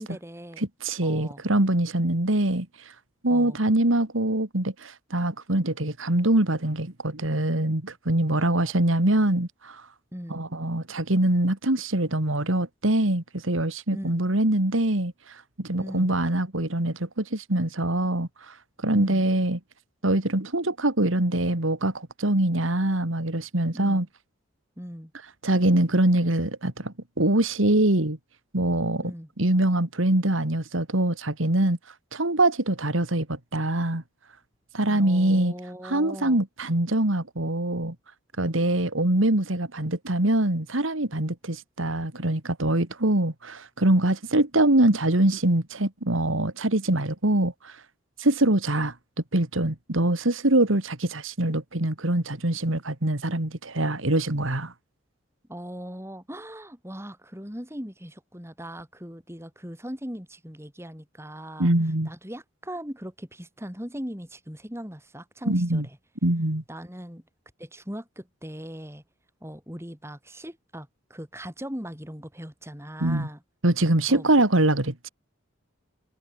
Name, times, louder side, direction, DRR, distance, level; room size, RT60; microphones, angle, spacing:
voice 1, 0.0-0.6 1.0-1.4 3.3-3.6 8.3-8.7 10.1-10.4 13.9-14.2 15.8-16.1 18.9-19.2 23.7-24.0 24.8-25.1 29.0-29.3 34.9-36.4 55.5-61.7 62.1-66.0 66.7-67.2 67.6-69.0 69.4-73.4 74.1-74.2, equal, 15° right, 6.3 m, -39 dB
voice 2, 0.6-2.9 3.2-9.9 10.3-19.6 20.0-24.1 25.4-28.2 28.5-29.1 29.4-31.8 32.1-34.0 34.7-35.5 35.8-37.9 38.4-47.8 48.2-48.9 49.3-54.7 61.6-62.1 65.5-65.9 66.2-66.6 73.0-73.3 73.6-75.1, right 1 dB, 75° right, 2.6 m, -24 dB
head